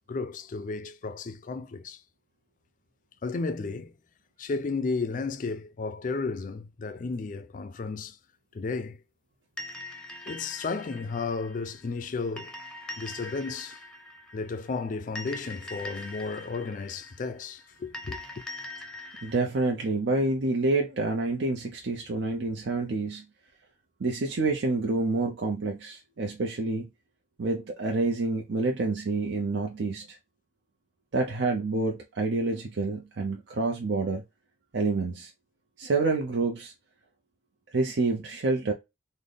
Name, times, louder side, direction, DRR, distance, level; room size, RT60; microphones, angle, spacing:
voice 1, 0.1-2.0 3.2-3.9 4.4-8.2 8.5-9.0 10.3-12.5 13.0-13.8 14.3-18.2, left 4 dB, 45° left, 0.4 m, -33 dB
sound 1, 9.6-19.4, left 2 dB, 5° left, 0.6 m, -42 dB
voice 2, 19.2-23.2 24.0-26.9 27.4-30.2 31.1-34.2 34.7-35.3 35.8-36.7 37.7-38.7, right 3 dB, 75° right, 0.6 m, -28 dB
3.9 x 2.1 x 3.3 m
head